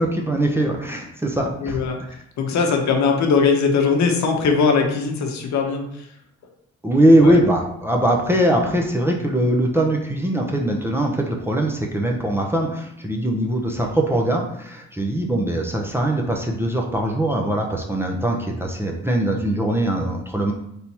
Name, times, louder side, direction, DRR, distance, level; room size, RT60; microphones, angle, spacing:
voice 1, 0.0-1.8 6.8-20.5, right 1 dB, 10° right, 0 dB, 0.6 m, -21 dB
voice 2, 1.6-2.0 2.4-6.0 7.2-7.4, left 5 dB, 65° left, 3 dB, 0.9 m, -20 dB
3.5 x 2.8 x 4.4 m, 0.76 s
cardioid pair, 90°, 30 cm